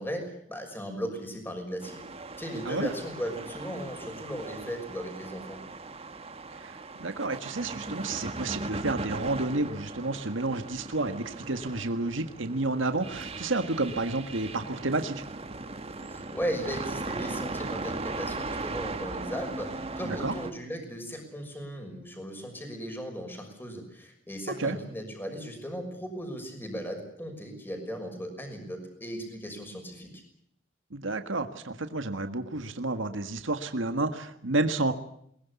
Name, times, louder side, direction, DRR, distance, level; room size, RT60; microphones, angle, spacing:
voice 1, 0.0-2.0 2.4-5.6 16.1-30.2, equal, 10° left, 4 dB, 6.2 m, -37 dB
sound 1, 1.8-20.5, right 3 dB, 30° right, 1.6 m, -38 dB
voice 2, 6.5-15.2 20.0-20.3 24.6-24.8 30.9-34.9, right 2 dB, 80° right, 7 dB, 1.7 m, -30 dB
22.5 x 20.0 x 8.4 m, 0.71 s
head